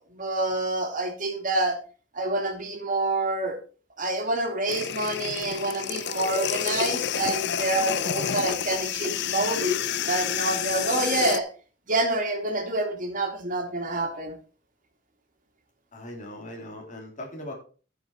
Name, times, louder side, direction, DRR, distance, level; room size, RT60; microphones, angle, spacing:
voice 1, 0.1-1.8 2.1-3.6 4.0-9.8 10.0-11.5 11.9-14.3, right 2 dB, 45° right, 3 dB, 2.4 m, -27 dB
sound 1, 4.7-11.4, left 8 dB, 60° left, 0.5 m, -29 dB
voice 2, 15.9-17.5, left 1 dB, 40° left, 0 dB, 2.9 m, -39 dB
12.0 x 6.1 x 4.2 m, 0.38 s
head